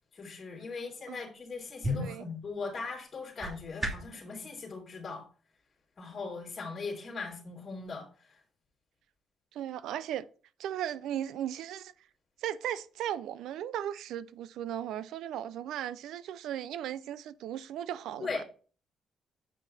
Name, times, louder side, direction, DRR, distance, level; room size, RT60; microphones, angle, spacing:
voice 1, 0.1-5.2 6.0-8.4 18.2-18.4, left 4 dB, 40° left, 2.9 m, -39 dB
sound 1, 1.3-4.2, left 1 dB, 20° right, 2.7 m, -37 dB
voice 2, 9.5-10.2 10.6-11.9 12.4-18.4, right 11 dB, 85° right, 0.5 m, -36 dB
8.3 x 5.4 x 4.2 m
cardioid pair, 90°, 0 cm